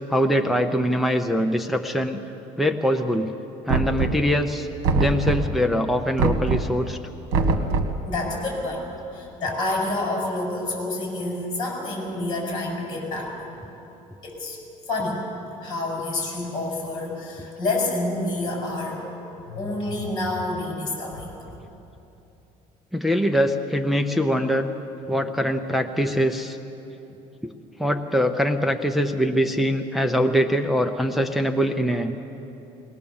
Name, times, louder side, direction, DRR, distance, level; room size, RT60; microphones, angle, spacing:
voice 1, 0.1-2.2 2.6-3.3 3.7-4.7 4.9-7.0 22.9-24.7 25.1-26.6 27.4-27.5 27.8-32.1, equal, ahead, 4 dB, 0.6 m, -23 dB
Knock, 3.7-4.4 4.8-5.6 6.2-6.8 7.3-8.0, right 3 dB, 80° right, 1.7 m, -23 dB
voice 2, 8.1-13.5 14.2-14.6 14.9-15.2 15.6-19.1 19.5-21.3, left 2 dB, 35° left, -1 dB, 6.1 m, -28 dB
20.5 x 19.5 x 7.0 m, 3.0 s
cardioid pair, 160°, 14 cm